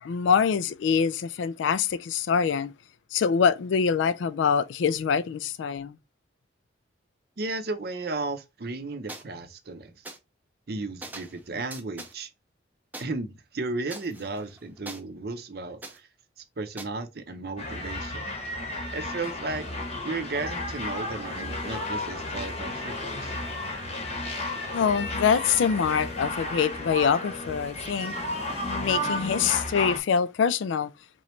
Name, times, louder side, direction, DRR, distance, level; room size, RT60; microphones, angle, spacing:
voice 1, 0.0-2.7 3.1-6.0 24.7-28.1 28.6-30.9, left 6 dB, 75° left, 0.3 m, -25 dB
voice 2, 7.4-9.9 10.7-12.3 13.0-16.1 16.6-18.2 18.9-19.7 20.0-23.3, right 3 dB, 50° right, 0.6 m, -34 dB
sound 1, 9.1-9.2 10.0-10.2 11.0-11.4 11.7-12.1 12.9-13.0 13.9-15.0 15.8-16.0 16.8-16.9, right 2 dB, 10° right, 0.5 m, -41 dB
sound 2, 17.6-30.0, left 1 dB, 35° left, 0.9 m, -33 dB
3.8 x 3.0 x 3.1 m
head